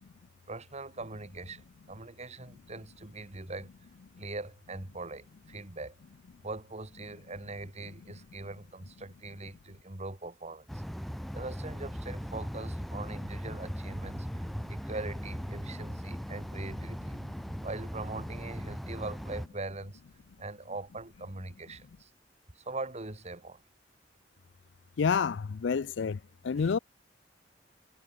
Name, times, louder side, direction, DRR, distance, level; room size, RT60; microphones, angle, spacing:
voice 1, 0.5-3.7 4.2-6.0 6.4-10.8 11.3-14.4 14.7-17.2 17.6-20.0 20.4-22.1 22.5-23.6 26.6-26.7, right 2 dB, 40° right, 2.5 m, -41 dB
sound 1, 10.7-19.5, equal, ahead, 0.8 m, -39 dB
voice 2, 25.0-26.2 26.4-26.8, left 5 dB, 80° left, 0.5 m, -28 dB
head